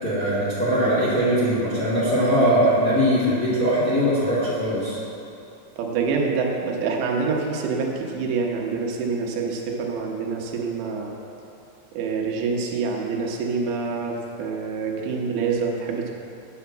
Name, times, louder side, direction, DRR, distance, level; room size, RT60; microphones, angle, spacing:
voice 1, 0.0-5.0, equal, 30° left, -9 dB, 1.6 m, -21 dB
voice 2, 5.8-11.1 11.9-16.1, right 4 dB, 85° right, 0 dB, 3.3 m, -26 dB
9.3 x 6.5 x 7.1 m, 2.7 s
omnidirectional pair, 5.0 m